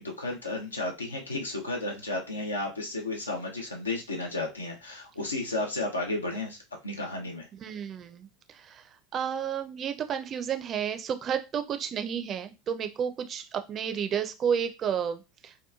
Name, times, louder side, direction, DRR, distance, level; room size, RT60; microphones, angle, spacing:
voice 1, 0.0-6.6 6.8-7.5, left 2 dB, 80° left, 1 dB, 0.5 m, -33 dB
voice 2, 7.6-8.3 8.5-8.8 9.1-15.6, right 8 dB, 35° right, 9 dB, 0.4 m, -31 dB
2.8 x 2.3 x 2.3 m, 0.26 s
figure-of-eight pair, 75°, 0 cm